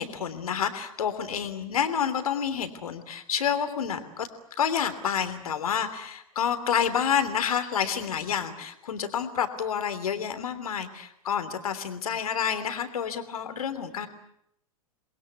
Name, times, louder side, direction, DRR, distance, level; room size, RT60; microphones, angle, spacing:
voice 1, 0.0-4.3 4.6-14.1, left 8 dB, 70° left, 9 dB, 3.2 m, -29 dB
29.0 x 21.5 x 8.1 m, 0.75 s
figure-of-eight pair, 100°, 19 cm